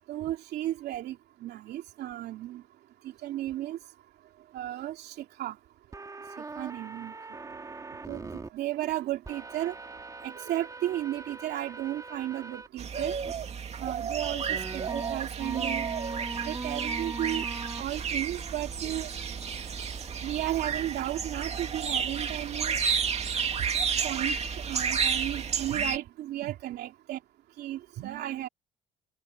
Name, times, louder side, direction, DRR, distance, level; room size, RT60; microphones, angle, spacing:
voice 1, 0.1-1.2 1.4-2.6 3.2-3.8 4.5-5.5 6.6-7.1 8.1-9.7 10.2-13.2 13.8-15.9 16.4-17.4 17.8-19.1 20.2-22.7 24.0-24.4 24.7-27.2 27.6-28.5, right 14 dB, 75° right, 2.8 m, -34 dB
sound 1, 5.9-8.5 9.2-12.7 13.2-13.3 14.5-25.7, right 3 dB, 20° right, 3.9 m, -42 dB
sound 2, 12.8-26.0, right 6 dB, 40° right, 2.5 m, -31 dB
cardioid pair, 110°, 17 cm